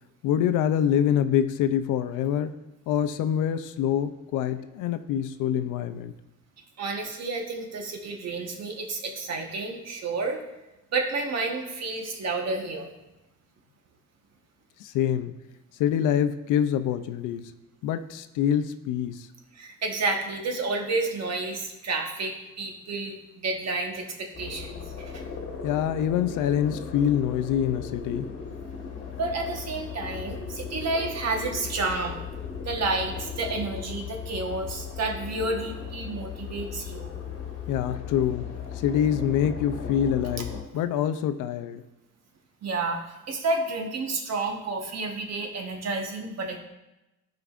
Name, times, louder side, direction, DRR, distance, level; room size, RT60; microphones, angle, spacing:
voice 1, 0.2-2.6 2.9-6.1 14.8-15.3 15.8-17.5 17.8-19.2 25.6-28.3 37.7-38.5 38.8-41.8, left 9 dB, 90° left, 11 dB, 0.5 m, -25 dB
voice 2, 6.8-10.4 10.9-12.9 19.5-25.2 29.2-32.2 32.6-37.1 42.6-43.0 43.3-46.6, right 3 dB, 60° right, 2 dB, 1.2 m, -30 dB
sound 1, 24.3-40.6, left 6 dB, 45° left, 1.2 m, -37 dB
12.5 x 4.8 x 2.5 m, 0.98 s
cardioid pair, 90°, 30 cm